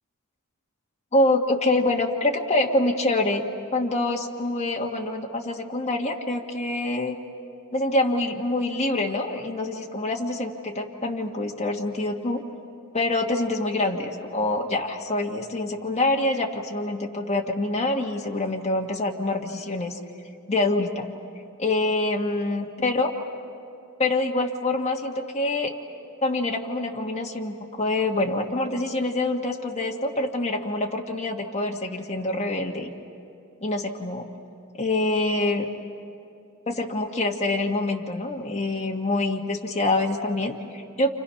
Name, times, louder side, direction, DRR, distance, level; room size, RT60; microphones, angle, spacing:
voice 1, 1.1-3.4 3.7-7.2 7.7-12.4 12.9-20.0 20.5-21.1 21.6-23.1 24.0-25.7 26.2-32.9 33.6-34.3 34.8-35.7 36.7-41.1, left 2 dB, 30° left, 0 dB, 1.7 m, -25 dB
29.5 x 29.5 x 5.8 m, 2.5 s
head